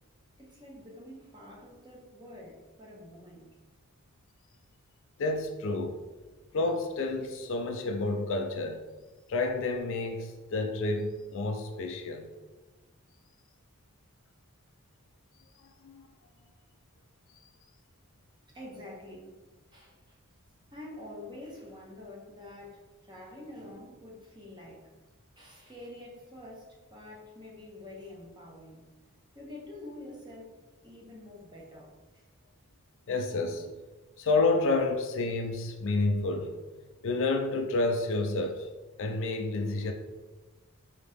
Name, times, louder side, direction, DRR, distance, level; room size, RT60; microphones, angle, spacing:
voice 1, 0.4-3.5 18.5-19.3 19.7-20.2 20.7-24.9 25.4-28.8 29.3-30.6 30.8-32.2, left 1 dB, 20° right, 0.9 m, -47 dB
voice 2, 5.2-6.0 6.5-8.8 9.3-12.3 15.8-16.1 33.1-33.7 34.2-36.6 37.0-38.7 39.0-39.9, left 2 dB, 60° left, 0.4 m, -29 dB
4.0 x 2.8 x 3.4 m
head